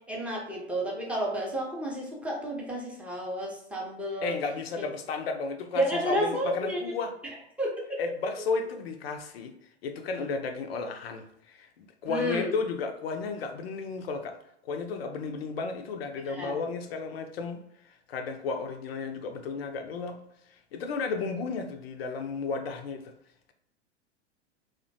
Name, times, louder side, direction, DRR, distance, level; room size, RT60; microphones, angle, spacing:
voice 1, 0.1-4.3 5.8-6.9 7.6-8.0 12.1-12.5 16.3-16.6, equal, 5° right, -3 dB, 0.5 m, -31 dB
voice 2, 4.2-7.1 8.0-9.5 9.8-14.4 14.6-17.6 18.1-20.2 20.7-23.1, left 4 dB, 65° left, 6 dB, 0.5 m, -33 dB
2.4 x 2.1 x 2.6 m, 0.75 s
figure-of-eight pair, 95°, 33 cm